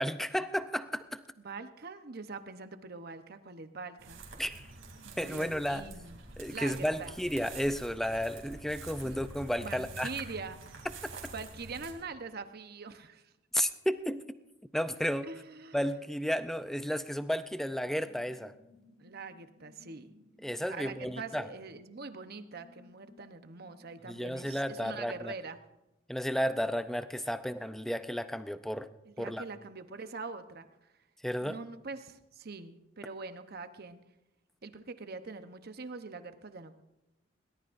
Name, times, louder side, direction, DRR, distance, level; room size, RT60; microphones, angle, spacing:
voice 1, 0.0-1.2 4.4-4.7 5.2-5.9 6.4-10.1 13.5-14.4 14.7-15.3 15.7-18.5 20.4-21.5 24.0-25.3 26.1-28.9 29.2-29.4 31.2-31.6, equal, ahead, 11 dB, 0.5 m, -33 dB
voice 2, 1.4-4.2 5.0-6.2 6.5-7.1 9.0-9.2 9.6-10.8 11.3-13.3 15.2-15.8 19.0-20.1 20.7-25.6 29.1-30.7 31.4-34.0 34.6-36.8, right 4 dB, 55° right, 9 dB, 0.9 m, -43 dB
sound 1, 4.0-11.9, right 3 dB, 90° right, 3.0 m, -47 dB
sound 2, 17.9-25.2, left 2 dB, 30° left, 1.6 m, -61 dB
21.5 x 18.0 x 2.6 m, 0.94 s
head